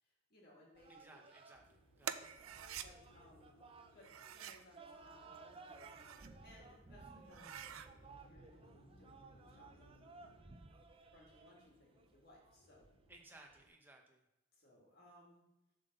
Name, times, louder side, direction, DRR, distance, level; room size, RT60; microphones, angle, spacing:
voice 1, 0.0-1.2 2.2-2.5 2.8-3.6 3.9-7.5 8.2-10.1 11.1-12.9 14.5-15.4, left 1 dB, 50° left, -2 dB, 1.9 m, -64 dB
sound 1, 0.7-13.7, right 3 dB, 25° right, 0.5 m, -59 dB
voice 2, 0.9-2.2 13.1-14.2, right 2 dB, 10° right, 1 dB, 0.9 m, -61 dB
sound 2, 1.5-13.2, equal, 75° left, 1.7 m, -67 dB
sound 3, 2.0-2.9 4.0-4.7 5.6-6.3 6.8-6.9 7.2-7.9, right 9 dB, 85° right, 0.4 m, -47 dB
7.5 x 3.8 x 6.6 m, 0.91 s
head